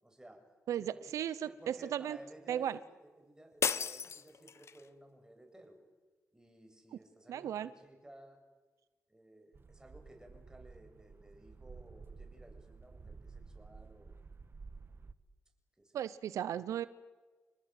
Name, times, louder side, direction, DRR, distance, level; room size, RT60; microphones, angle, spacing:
voice 1, 0.0-0.5 0.8-1.2 1.4-5.8 6.3-8.4 9.1-14.1 15.8-16.0, right 1 dB, 10° right, 4 dB, 8.0 m, -56 dB
voice 2, 0.7-2.2 2.5-2.8 7.3-7.7 15.9-16.9, right 10 dB, 80° right, 16 dB, 0.8 m, -36 dB
sound 1, 3.6-4.9, left 6 dB, 60° left, 1.3 m, -35 dB
sound 2, 9.5-15.1, right 4 dB, 45° right, 1.5 m, -52 dB
29.0 x 19.5 x 9.3 m, 1.3 s
supercardioid pair, 55°, 5 cm